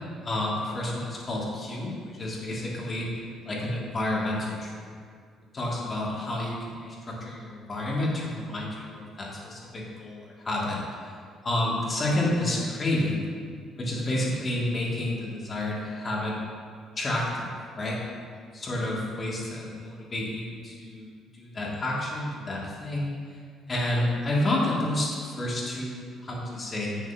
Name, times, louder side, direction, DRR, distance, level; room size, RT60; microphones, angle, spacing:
voice 1, 0.2-4.8 5.4-11.2 11.4-13.2 13.7-16.4 17.0-18.0 18.5-21.1 21.3-23.4 23.7-27.0, left 1 dB, 35° left, -4 dB, 2.5 m, -30 dB
9.8 x 9.1 x 2.9 m, 2.1 s
figure-of-eight pair, 45°, 0 cm